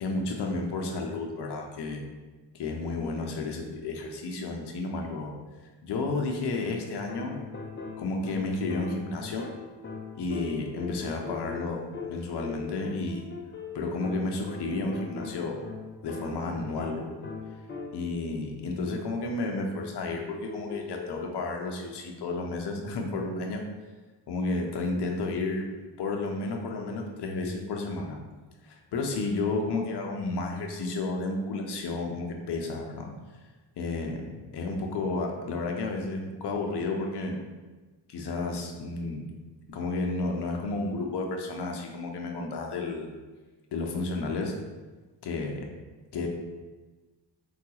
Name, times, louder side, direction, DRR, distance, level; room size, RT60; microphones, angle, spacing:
voice 1, 0.0-2.0 2.5-5.3 5.8-7.4 8.0-9.5 10.1-13.3 13.7-15.6 16.0-17.2 17.9-23.6 24.3-28.2 28.6-33.1 33.8-37.4 38.1-39.2 39.7-43.2 43.7-44.5 45.2-45.7 46.1-46.3, left 3 dB, 60° left, 1 dB, 0.7 m, -32 dB
sound 1, 6.6-18.2 20.5-21.3, left 4 dB, 25° left, 0.5 m, -40 dB
3.6 x 2.3 x 2.8 m, 1.3 s
cardioid pair, 65°, 45 cm